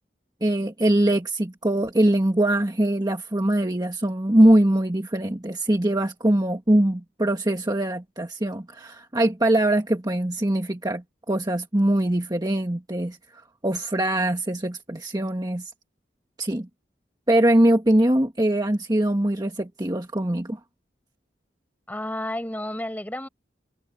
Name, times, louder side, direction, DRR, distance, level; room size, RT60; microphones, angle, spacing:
voice 1, 0.4-13.2 13.6-15.7 16.4-16.7 17.3-20.6, right 1 dB, 20° right, 1.5 m, -22 dB
voice 2, 21.9-23.3, left 1 dB, 10° left, 4.5 m, -31 dB
open air
head